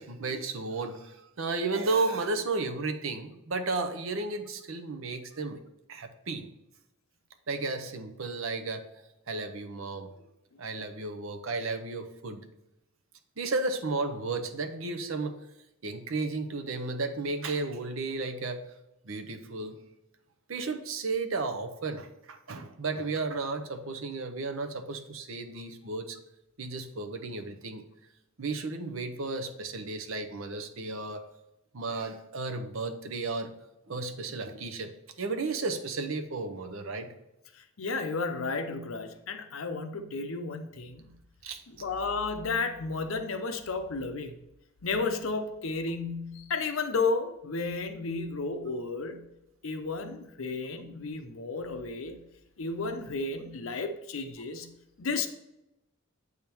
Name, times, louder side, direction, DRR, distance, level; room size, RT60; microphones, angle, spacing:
voice 1, 0.0-5.6 5.9-6.5 7.5-8.8 9.3-10.1 10.6-12.4 13.4-15.4 15.8-18.6 19.0-19.8 20.5-26.2 26.6-27.8 28.4-31.2 31.7-33.5 33.9-34.9 35.2-37.1 41.4-41.6, right 3 dB, 70° right, 7 dB, 0.8 m, -33 dB
voice 2, 37.5-41.2 41.7-44.3 44.8-49.3 49.6-52.2 52.6-54.7 55.0-55.3, left 3 dB, 75° left, 8 dB, 0.7 m, -33 dB
8.0 x 3.6 x 4.5 m, 0.89 s
head